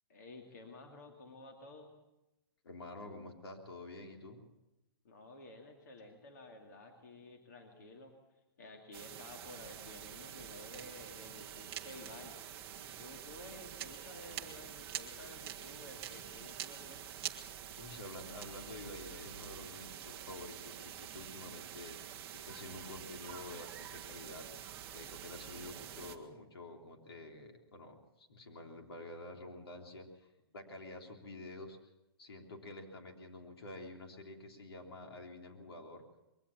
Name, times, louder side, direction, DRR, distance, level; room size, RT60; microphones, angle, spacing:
voice 1, 0.1-1.9 5.0-8.1 8.6-12.5 13.0-17.0, left 2 dB, 45° left, 3 dB, 2.4 m, -53 dB
voice 2, 2.6-4.4 17.8-22.0 22.3-24.5 24.9-31.8 32.2-36.0, left 2 dB, 80° left, 3 dB, 3.5 m, -49 dB
sound 1, 8.9-26.2, right 10 dB, 15° right, 0.9 m, -47 dB
21.5 x 17.5 x 7.3 m, 0.95 s
hypercardioid pair, 180°, 13 cm